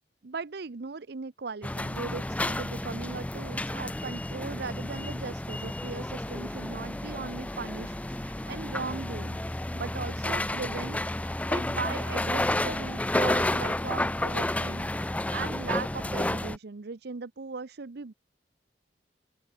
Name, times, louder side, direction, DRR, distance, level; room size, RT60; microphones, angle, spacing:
voice 1, 0.2-11.0 11.5-18.1, right 4 dB, 60° right, 0.7 m, -38 dB
sound 1, 1.6-16.6, left 1 dB, 10° left, 0.5 m, -31 dB
open air
head